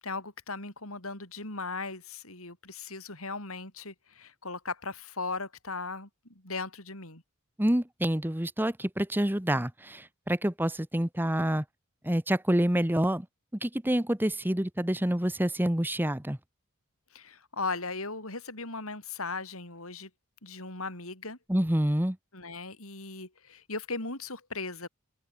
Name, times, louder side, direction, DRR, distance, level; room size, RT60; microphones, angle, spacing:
voice 1, 0.0-6.1 6.4-7.2 17.1-20.1 20.4-21.4 22.3-24.9, left 3 dB, 65° left, 7.5 m, -37 dB
voice 2, 7.6-10.0 10.3-11.6 12.0-13.2 13.6-16.4 21.5-22.2, right 1 dB, 10° right, 1.2 m, -27 dB
open air
head